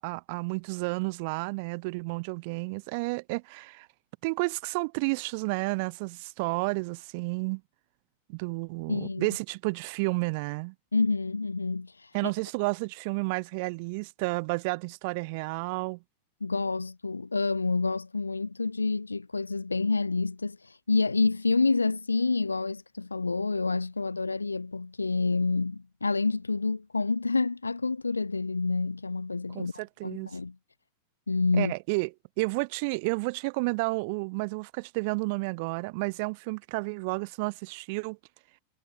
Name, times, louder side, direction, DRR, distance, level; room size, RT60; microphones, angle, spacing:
voice 1, 0.0-3.9 4.2-7.6 8.3-10.7 12.1-16.0 29.5-30.3 31.5-32.1 32.4-38.2, right 29 dB, 45° right, 2.8 m, -31 dB
voice 2, 8.9-9.3 10.9-12.3 16.4-30.5 31.3-31.7, left 3 dB, 80° left, 2.9 m, -28 dB
figure-of-eight pair, 90°, 0 cm